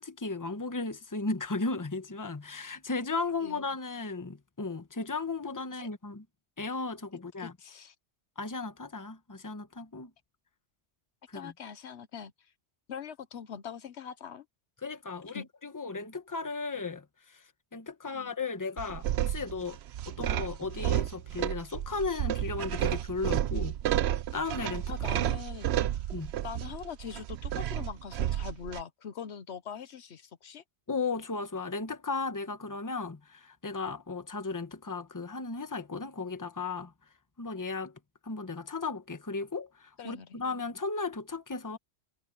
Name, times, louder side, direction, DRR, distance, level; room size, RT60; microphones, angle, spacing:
voice 1, 0.0-6.2 6.6-7.5 8.4-10.1 11.3-11.5 14.8-17.5 17.7-19.8 20.1-23.8 24.3-25.0 26.1-26.3 30.9-36.9 37.4-37.9 38.2-41.8, left 3 dB, 15° left, 1.1 m, -35 dB
voice 2, 7.4-7.9 11.3-12.3 12.9-14.5 15.3-15.5 18.1-18.3 24.9-26.1 26.4-30.6 40.0-40.4, left 7 dB, 70° left, 1.1 m, -42 dB
sound 1, 18.8-28.8, right 12 dB, 70° right, 0.8 m, -31 dB
omnidirectional pair, 1.2 m